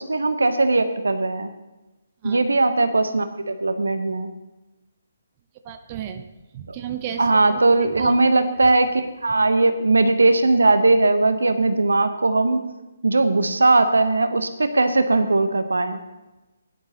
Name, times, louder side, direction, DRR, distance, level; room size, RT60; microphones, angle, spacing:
voice 1, 0.0-1.5 2.2-4.3 7.2-12.6 13.0-16.0, right 2 dB, 75° right, 9 dB, 1.0 m, -19 dB
voice 2, 5.6-6.2 6.5-7.6 8.0-8.1, right 9 dB, 30° right, 7 dB, 0.8 m, -33 dB
17.0 x 11.0 x 2.9 m, 1.1 s
figure-of-eight pair, 140°, 0 cm